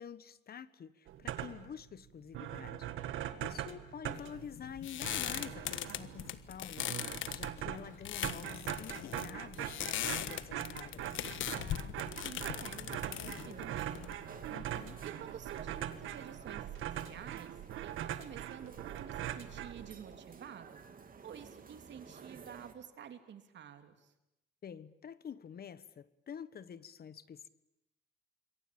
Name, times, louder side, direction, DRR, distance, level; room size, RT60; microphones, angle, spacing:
voice 1, 0.0-2.9 3.4-7.0 7.3-11.0 14.5-15.0 24.6-27.5, left 8 dB, 50° left, 1.3 m, -48 dB
sound 1, 1.1-1.8 2.1-2.2 2.3-20.2, right 11 dB, 85° right, 1.9 m, -42 dB
voice 2, 3.3-3.8 11.5-14.1 15.0-17.5 17.8-18.7 19.0-20.8 21.2-24.1, right 8 dB, 65° right, 3.1 m, -51 dB
sound 2, 4.2-14.5, left 12 dB, 75° left, 1.3 m, -40 dB
sound 3, 12.4-22.7, right 5 dB, 45° right, 2.9 m, -54 dB
27.0 x 23.0 x 8.9 m
cardioid pair, 90°, 20 cm